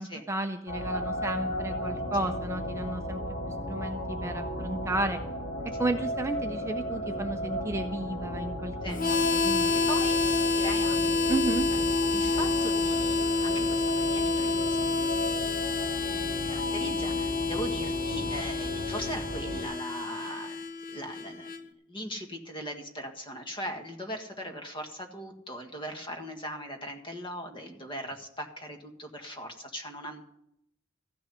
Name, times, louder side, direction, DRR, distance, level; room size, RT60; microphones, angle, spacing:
voice 1, 0.0-5.2 5.8-9.7 11.3-11.7, right 2 dB, 15° right, 6 dB, 0.5 m, -33 dB
sound 1, 0.7-19.6, equal, 75° left, 3.0 m, -35 dB
Harmonica, 8.9-21.6, left 3 dB, 45° left, 0.9 m, -28 dB
voice 2, 9.9-11.4 12.1-20.6 20.9-30.2, equal, 25° left, 4 dB, 1.7 m, -40 dB
14.5 x 6.2 x 9.8 m, 0.78 s
head